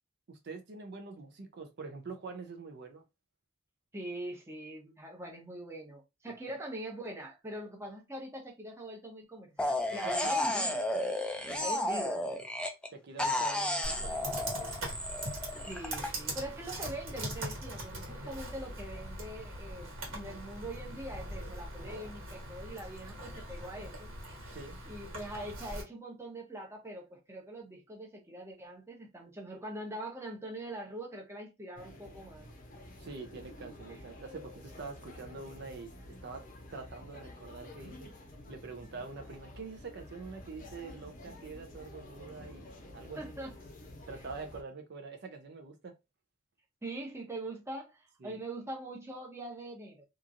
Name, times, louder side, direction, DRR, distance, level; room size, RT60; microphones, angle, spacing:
voice 1, 0.3-3.0 6.3-6.4 10.0-10.5 11.5-11.7 12.9-14.8 24.5-24.8 33.0-35.9 36.2-36.4 36.7-38.1 38.5-43.2 44.1-45.9 48.2-48.4, right 4 dB, 55° right, 0.5 m, -45 dB
voice 2, 3.9-10.8 11.6-12.3 15.6-24.1 24.9-32.5 43.2-43.5 46.8-50.0, right 1 dB, 15° right, 0.7 m, -43 dB
sound 1, 9.6-12.9 13.2-16.1, left 1 dB, 5° left, 0.3 m, -32 dB
Computer keyboard, 13.8-25.8, right 1 dB, 75° right, 1.4 m, -41 dB
sound 2, 31.8-44.6, left 1 dB, 40° left, 0.7 m, -50 dB
2.9 x 2.4 x 2.5 m
head